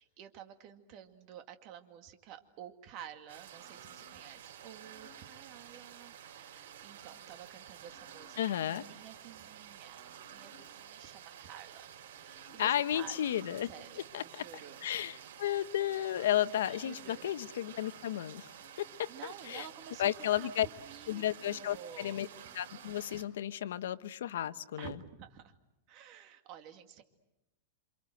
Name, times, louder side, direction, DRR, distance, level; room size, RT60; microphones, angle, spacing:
voice 1, 0.0-11.9 12.2-13.2 13.6-14.9 16.6-17.3 18.7-21.2 21.5-22.2 24.8-25.6 25.9-27.0, right 9 dB, 35° right, 7 dB, 2.2 m, -51 dB
sound 1, 3.3-23.2, right 9 dB, 80° right, 4.6 m, -51 dB
voice 2, 8.4-8.8 12.6-13.7 14.1-14.4 14.8-18.5 18.8-19.7 20.0-20.7 21.1-22.3 22.5-25.0, left 11 dB, 80° left, 13 dB, 1.1 m, -33 dB
28.5 x 26.5 x 7.8 m, 0.92 s
supercardioid pair, 170°, 0 cm